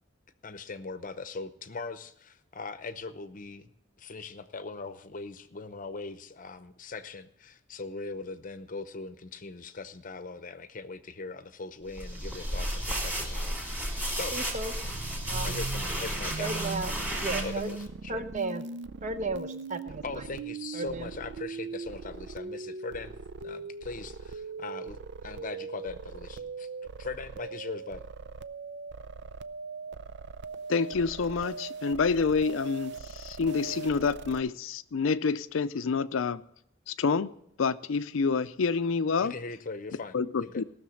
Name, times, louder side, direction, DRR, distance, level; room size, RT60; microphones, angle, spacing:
voice 1, 0.4-3.7 4.0-14.4 15.4-16.6 17.4-18.2 20.0-23.1 23.4-26.7 27.0-28.0 39.2-40.6, left 3 dB, 40° left, 0.7 m, -40 dB
sound 1, 11.9-17.8, equal, 10° right, 2.7 m, -33 dB
voice 2, 14.3-14.7 15.3-15.6 16.4-17.7 18.1-18.7 19.0-20.3 20.7-21.1, right 3 dB, 40° right, 0.8 m, -34 dB
sound 2, 14.8-34.4, right 4 dB, 60° right, 0.5 m, -40 dB
voice 3, 30.7-36.4 36.9-37.3 37.6-39.3 40.1-40.6, left 5 dB, 80° left, 0.5 m, -28 dB
17.5 x 6.6 x 6.3 m
head